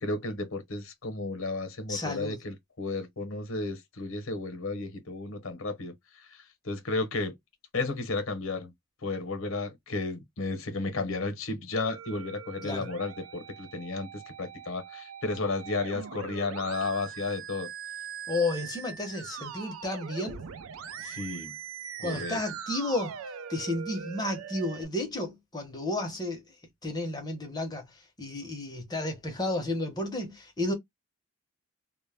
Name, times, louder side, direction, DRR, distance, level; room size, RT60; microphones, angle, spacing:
voice 1, 0.0-5.9 6.6-7.3 7.7-8.7 9.0-17.7 21.0-21.5 22.0-22.4, left 3 dB, 70° left, 0.8 m, -33 dB
voice 2, 1.9-2.4 12.6-12.9 18.3-20.4 22.0-23.2 23.5-26.4 26.8-27.9 28.2-30.7, left 2 dB, 20° left, 0.7 m, -32 dB
Musical instrument, 11.8-24.8, right 7 dB, 75° right, 0.4 m, -41 dB
2.1 x 2.1 x 3.3 m
head